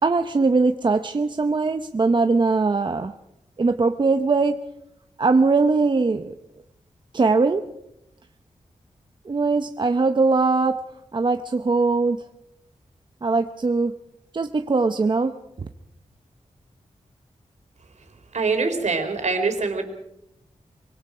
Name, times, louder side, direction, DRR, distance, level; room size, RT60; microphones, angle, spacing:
voice 1, 0.0-3.1 3.6-4.6 5.2-6.3 7.1-7.7 9.3-10.8 11.1-12.2 13.2-14.0 14.3-15.3 15.6-15.7, right 3 dB, 40° right, 7 dB, 0.8 m, -21 dB
voice 2, 18.3-19.8, right 4 dB, 70° right, 5 dB, 3.7 m, -24 dB
25.0 x 23.0 x 5.0 m, 0.84 s
wide cardioid pair, 140°, 13 cm